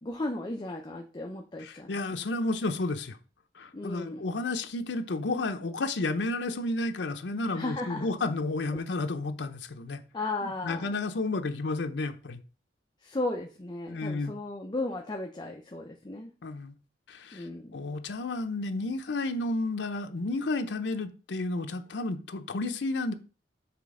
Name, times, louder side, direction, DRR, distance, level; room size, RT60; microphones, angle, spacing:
voice 1, 0.0-1.9 3.7-4.2 7.5-8.1 10.1-11.0 13.0-16.3 17.3-17.8, left 2 dB, 25° left, 0.5 m, -35 dB
voice 2, 1.6-3.2 3.5-10.0 10.4-12.4 13.9-14.4 16.4-16.7 17.1-17.5 17.7-23.1, left 2 dB, 70° left, 0.6 m, -32 dB
5.9 x 3.3 x 4.8 m
head